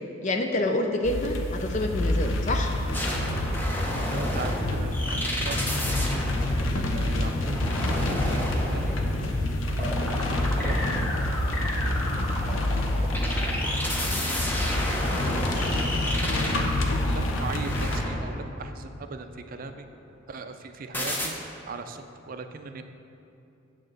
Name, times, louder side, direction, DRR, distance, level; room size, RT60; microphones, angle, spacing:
voice 1, 0.2-2.8, left 1 dB, 40° left, 4 dB, 0.4 m, -27 dB
sound 1, 1.0-18.0, left 1 dB, 80° left, 0.7 m, -27 dB
sound 2, 2.9-18.6 20.9-21.3, equal, 10° left, 0.8 m, -32 dB
voice 2, 3.6-5.6 6.0-6.2 6.8-7.7 8.0-8.9 9.8-10.9 12.4-13.7 14.2-14.7 16.5-19.9 20.3-21.3 21.7-22.8, right 4 dB, 45° right, 7 dB, 0.4 m, -40 dB
8.9 x 3.7 x 6.5 m, 2.7 s
head